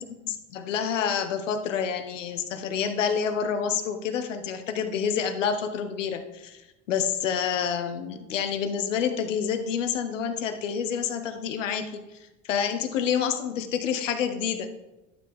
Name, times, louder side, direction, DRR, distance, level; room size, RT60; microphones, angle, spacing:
voice 1, 0.2-6.6 6.9-12.1 12.4-14.7, left 7 dB, 85° left, 7 dB, 1.2 m, -28 dB
11.5 x 7.8 x 3.7 m, 1.0 s
hypercardioid pair, 85°, 37 cm